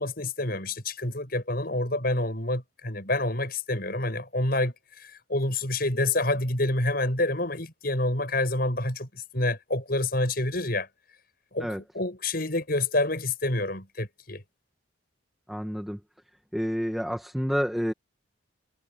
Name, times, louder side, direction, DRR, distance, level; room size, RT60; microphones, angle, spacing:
voice 1, 0.0-4.7 5.0-10.9 11.5-14.4, left 2 dB, 50° left, 7.1 m, -28 dB
voice 2, 15.5-16.0 16.5-17.9, equal, ahead, 1.8 m, -29 dB
head